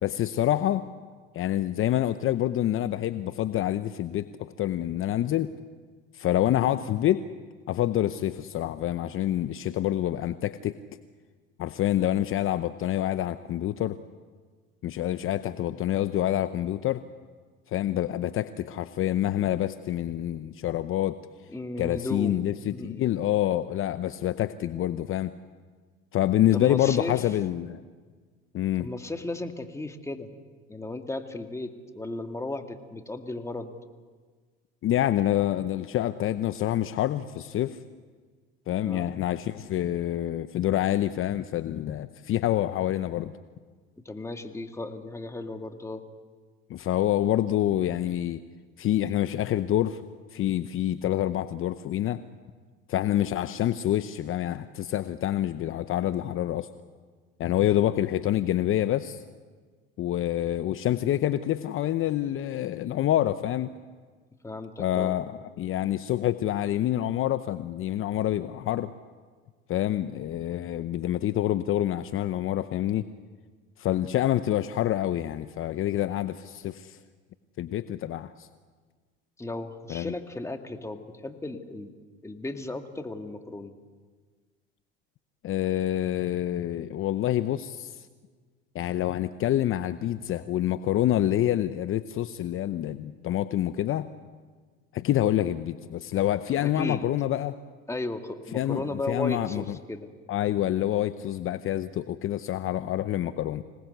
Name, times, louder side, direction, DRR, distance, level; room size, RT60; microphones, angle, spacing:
voice 1, 0.0-0.8 1.3-5.5 6.1-7.2 7.7-10.7 11.6-14.0 14.8-17.0 17.7-21.2 21.8-25.3 26.1-27.8 28.5-28.9 34.8-37.8 38.7-43.3 46.7-48.4 48.8-50.0 50.3-52.2 52.9-56.7 57.4-59.2 60.0-63.7 64.8-65.3 65.6-68.9 69.7-73.1 73.8-77.0 77.6-78.5 79.9-80.1 85.4-88.1 88.7-94.1 94.9-97.5 98.5-99.8 100.3-103.6, left 12 dB, 45° left, 12 dB, 0.8 m, -27 dB
voice 2, 21.5-22.4 22.7-23.1 26.5-27.2 28.8-30.3 30.7-33.7 38.8-39.1 44.1-46.0 64.4-65.1 79.4-81.9 82.2-83.7 96.5-97.0 97.9-100.1, left 2 dB, 10° left, 5 dB, 2.1 m, -35 dB
26.0 x 18.5 x 8.0 m, 1.5 s
hypercardioid pair, 80°, 30 cm